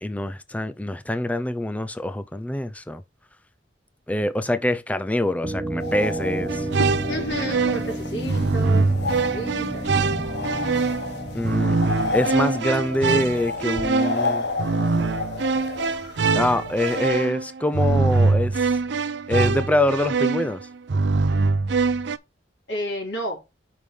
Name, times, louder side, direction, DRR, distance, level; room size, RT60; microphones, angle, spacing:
voice 1, 0.0-3.0 4.1-6.7 11.3-11.8 12.1-14.5 16.3-18.6 19.3-20.6, left 1 dB, 10° left, 0.5 m, -25 dB
sound 1, 5.4-14.1, right 1 dB, 15° right, 1.1 m, -32 dB
sound 2, 5.8-17.1, left 3 dB, 65° left, 1.2 m, -32 dB
sound 3, 6.5-22.2, right 4 dB, 70° right, 0.5 m, -23 dB
voice 2, 7.1-8.9 9.3-9.9 22.7-23.4, right 1 dB, 85° left, 3.6 m, -31 dB
5.5 x 4.9 x 5.3 m
head